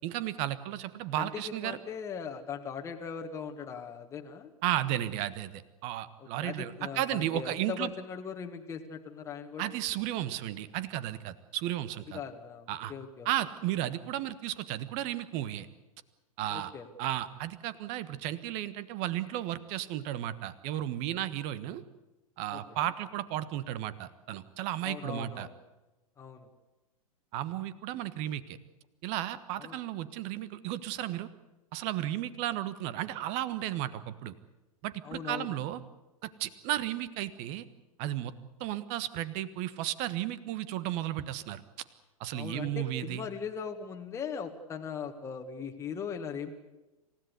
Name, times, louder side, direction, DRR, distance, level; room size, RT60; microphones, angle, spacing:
voice 1, 0.0-1.8 4.6-7.9 9.6-12.2 12.7-12.9 13.2-15.7 16.4-16.7 17.0-21.8 22.4-25.5 27.3-28.6 29.0-31.3 31.7-34.3 34.8-35.8 36.2-37.6 38.0-38.3 38.6-41.6 42.2-43.2, right 13 dB, 35° right, 16 dB, 1.4 m, -34 dB
voice 2, 1.2-4.5 6.2-9.7 12.1-13.3 16.5-16.9 22.5-22.9 24.8-25.5 26.2-26.5 29.6-29.8 35.0-35.6 42.3-46.5, left 6 dB, 15° left, 3 dB, 1.8 m, -40 dB
27.5 x 16.5 x 8.2 m, 1.1 s
figure-of-eight pair, 100°, 19 cm